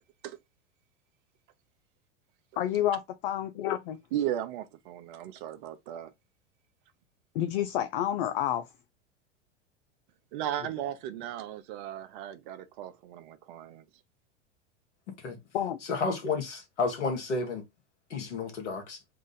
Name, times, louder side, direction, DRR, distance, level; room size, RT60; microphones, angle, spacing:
voice 1, 2.6-4.0 7.3-8.7 15.5-15.8, left 11 dB, 50° left, 0.5 m, -29 dB
voice 2, 4.1-6.1 10.3-13.8, right 11 dB, 45° right, 0.6 m, -36 dB
voice 3, 15.9-17.6 18.1-19.0, left 4 dB, 70° left, 1.5 m, -31 dB
3.8 x 2.5 x 3.9 m
figure-of-eight pair, 90°, 36 cm